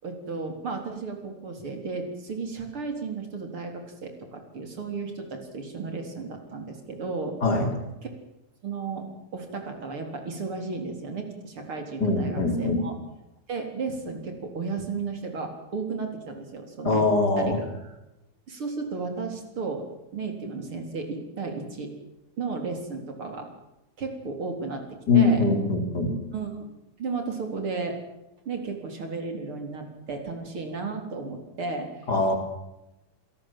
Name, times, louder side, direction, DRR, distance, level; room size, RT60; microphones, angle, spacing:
voice 1, 0.0-7.4 8.0-8.1 8.6-9.1 9.3-12.9 13.5-17.1 17.4-17.6 18.5-19.8 20.1-21.9 22.4-23.5 24.0-24.9 25.1-25.4 26.3-26.6 27.0-28.0 28.5-31.9, right 4 dB, 75° right, 4 dB, 4.8 m, -34 dB
voice 2, 12.0-12.9 16.8-17.6 25.1-26.1 32.1-32.3, left 3 dB, 45° left, 4 dB, 4.6 m, -22 dB
26.0 x 18.5 x 7.6 m, 0.92 s
omnidirectional pair, 2.4 m